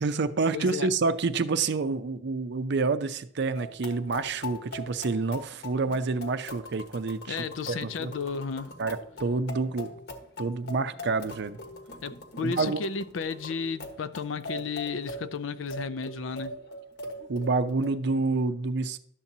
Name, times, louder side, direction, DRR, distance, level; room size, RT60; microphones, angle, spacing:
voice 1, 0.0-7.4 7.7-8.1 8.8-9.9 10.4-11.6 12.4-12.8 17.3-19.0, right 3 dB, 60° right, 0.5 m, -28 dB
voice 2, 0.5-0.9 7.3-8.8 12.0-16.5, left 5 dB, 80° left, 0.5 m, -33 dB
sound 1, 3.5-17.9, left 1 dB, 60° left, 1.2 m, -42 dB
11.5 x 7.3 x 2.7 m
head